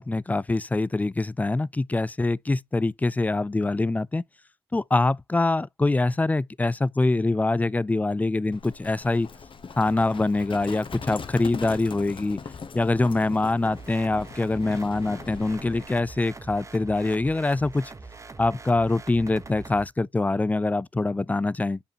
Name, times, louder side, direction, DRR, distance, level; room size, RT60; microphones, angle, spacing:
voice 1, 0.0-4.2 4.7-9.3 9.8-12.4 12.7-17.9 18.4-21.8, left 2 dB, 15° left, 0.3 m, -24 dB
Livestock farm animals working animals, 8.5-15.9, left 5 dB, 55° left, 1.0 m, -40 dB
sound 1, 13.7-19.9, right 3 dB, 30° right, 0.9 m, -43 dB
7.3 x 5.1 x 2.8 m
cardioid pair, 70°, 11 cm